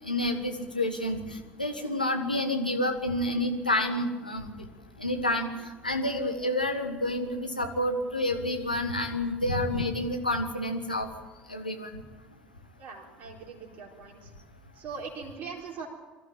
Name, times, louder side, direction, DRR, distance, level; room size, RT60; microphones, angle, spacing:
voice 1, 0.0-1.2 1.6-4.6 5.0-5.5 5.8-11.1 11.5-11.9, left 1 dB, 90° left, 3 dB, 1.6 m, -29 dB
voice 2, 12.8-14.3 14.7-15.9, right 5 dB, 45° right, -1 dB, 4.1 m, -41 dB
23.5 x 13.0 x 8.7 m, 1.2 s
figure-of-eight pair, 60°, 4 cm